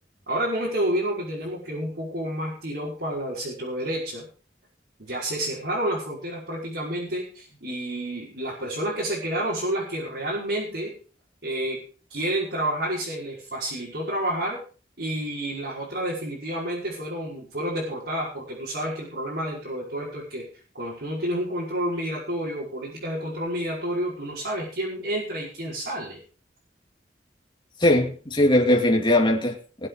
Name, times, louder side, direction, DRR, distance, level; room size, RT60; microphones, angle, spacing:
voice 1, 0.3-4.3 5.0-10.9 11.4-11.8 12.1-14.6 15.0-20.4 20.7-26.2, right 1 dB, 70° right, 5.7 m, -29 dB
voice 2, 27.8-29.9, left 1 dB, 25° left, 2.4 m, -20 dB
20.5 x 7.9 x 5.0 m
head